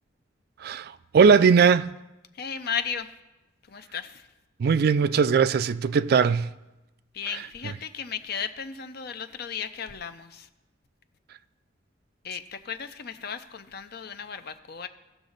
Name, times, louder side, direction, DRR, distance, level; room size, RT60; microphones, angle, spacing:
voice 1, 0.6-1.9 4.6-6.5, right 6 dB, 50° right, 0.3 m, -20 dB
voice 2, 2.3-3.1 3.7-4.3 7.1-10.5 12.2-14.9, left 7 dB, 50° left, 0.6 m, -35 dB
16.5 x 6.1 x 3.9 m
head